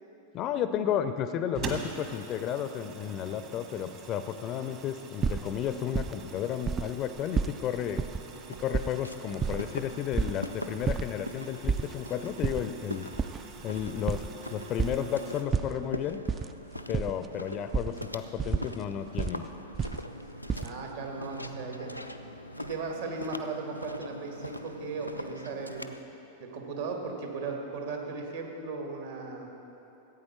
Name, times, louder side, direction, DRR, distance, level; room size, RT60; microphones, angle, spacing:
voice 1, 0.3-8.1 8.6-13.1 13.6-14.2 14.5-16.2 16.9-19.5, left 9 dB, 35° left, 11 dB, 0.5 m, -33 dB
sound 1, 1.5-15.4, right 5 dB, 40° right, 1.3 m, -45 dB
sound 2, 5.2-6.4 6.6-7.6 8.0-8.2 8.6-10.4 10.8-11.1 11.4-11.9 12.3-12.6 13.1-15.0 15.5-16.5 16.8-17.3 17.7-17.9 18.4-19.3 19.7-20.7, right 6 dB, 20° right, 0.3 m, -30 dB
Walk footsteps, 8.3-26.0, equal, 90° left, 0.4 m, -43 dB
voice 2, 20.6-21.9 22.6-25.9 26.4-29.5, right 4 dB, 60° right, 1 dB, 1.9 m, -37 dB
15.5 x 8.7 x 4.5 m, 3.0 s
figure-of-eight pair, 90°, 0 cm